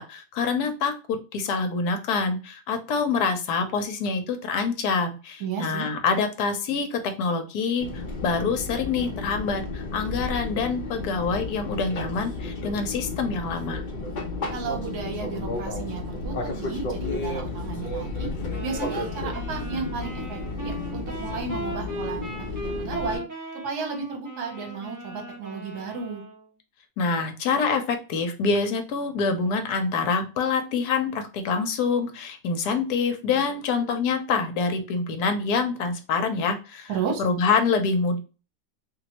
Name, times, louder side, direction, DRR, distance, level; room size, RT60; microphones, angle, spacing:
voice 1, 0.0-13.8 27.0-36.9 37.2-38.2, left 4 dB, 70° left, 7 dB, 1.1 m, -26 dB
voice 2, 5.4-5.9 14.5-18.3 18.6-22.3 22.6-23.2 23.6-26.2 36.9-37.2, right 5 dB, 70° right, 2 dB, 1.4 m, -33 dB
Fixed-wing aircraft airplane, 7.8-23.2, left 3 dB, 45° left, 0.6 m, -33 dB
sound 1, 18.5-26.5, right 1 dB, 30° right, 0.3 m, -38 dB
3.0 x 2.9 x 2.8 m, 0.33 s
omnidirectional pair, 1.9 m